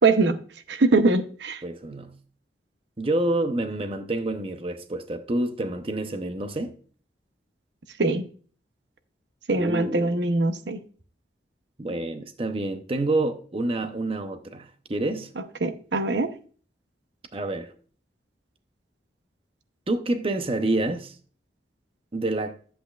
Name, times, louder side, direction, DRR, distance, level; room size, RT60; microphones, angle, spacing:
voice 1, 0.0-0.4 0.7-1.6 8.0-8.2 9.5-10.8 15.6-16.3, right 3 dB, 85° right, 0.8 m, -22 dB
voice 2, 1.6-2.2 3.0-6.7 9.5-10.2 11.8-15.3 17.3-17.7 19.9-21.2 22.1-22.6, right 2 dB, 30° right, 0.7 m, -28 dB
11.0 x 8.1 x 2.4 m
head